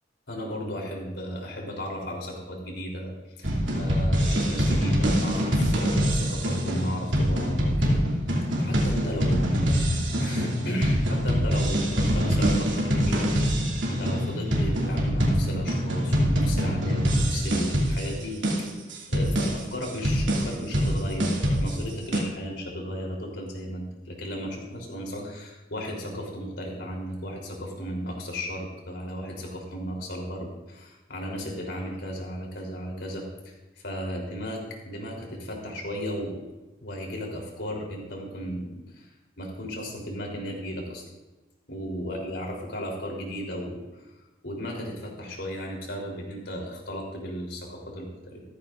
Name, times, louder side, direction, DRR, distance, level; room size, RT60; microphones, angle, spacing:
voice 1, 0.3-8.0 8.6-13.3 13.9-18.7 19.1-33.5 33.8-36.5 36.8-39.1 39.4-41.0 41.7-43.9 44.4-48.4, equal, 70° left, -1 dB, 3.6 m, -35 dB
sound 1, 3.4-22.2, equal, 90° right, 2.8 m, -24 dB
15.5 x 14.0 x 2.6 m, 1.1 s
head